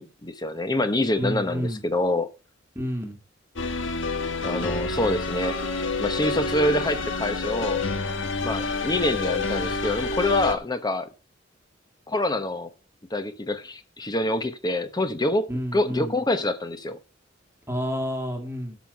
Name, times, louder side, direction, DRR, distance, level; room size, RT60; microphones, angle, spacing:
voice 1, 0.0-2.3 4.4-5.6 6.0-7.8 8.4-11.1 12.1-12.7 13.1-15.5 15.7-17.0, left 1 dB, 20° left, 1.1 m, -26 dB
voice 2, 1.2-1.8 2.8-3.2 15.5-16.2 17.7-18.8, equal, 15° right, 2.3 m, -29 dB
sound 1, 3.6-10.6, left 3 dB, 80° left, 1.4 m, -28 dB
12.5 x 6.2 x 5.6 m
head